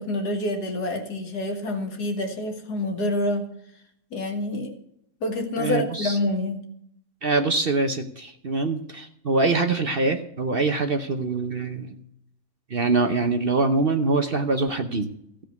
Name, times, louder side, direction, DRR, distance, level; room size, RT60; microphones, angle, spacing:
voice 1, 0.0-3.5 4.1-4.8 5.2-6.6, left 1 dB, 80° left, 4 dB, 2.3 m, -27 dB
voice 2, 5.6-6.2 7.2-11.9 12.7-15.1, right 3 dB, 45° right, 7 dB, 0.9 m, -24 dB
15.0 x 5.2 x 9.4 m, 0.73 s
omnidirectional pair, 1.7 m